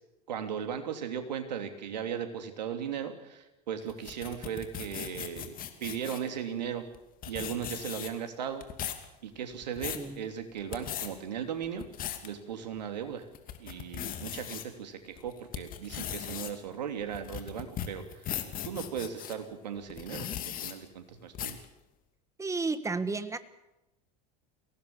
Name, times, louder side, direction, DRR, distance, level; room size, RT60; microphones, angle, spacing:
voice 1, 0.3-6.9 7.3-8.6 9.2-11.8 12.2-13.3 13.6-18.4 18.6-21.6, right 8 dB, 80° right, 6 dB, 3.0 m, -37 dB
sound 1, 3.9-6.3 6.9-7.0 7.2-8.3 8.6-9.1 9.5-10.1 10.6-11.1 11.6-12.3 12.8-12.9 13.3-14.6 15.2-19.4 19.9-20.7 21.4-21.7, left 10 dB, 40° left, 2.7 m, -38 dB
voice 2, 22.4-23.4, right 3 dB, 15° right, 13 dB, 1.7 m, -32 dB
23.0 x 17.5 x 7.2 m, 0.94 s
hypercardioid pair, 85°, 21 cm